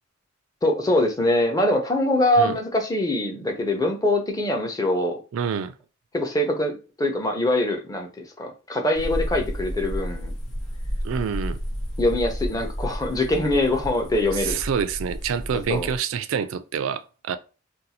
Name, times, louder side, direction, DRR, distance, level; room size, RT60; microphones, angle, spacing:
voice 1, 0.6-5.2 6.1-10.3 12.0-14.6 15.7-15.9, left 1 dB, 15° left, 0.6 m, -23 dB
voice 2, 5.3-5.7 11.0-11.6 14.3-17.4, right 7 dB, 75° right, 0.3 m, -27 dB
sound 1, 8.9-16.0, equal, 85° left, 1.0 m, -31 dB
2.6 x 2.3 x 4.1 m
head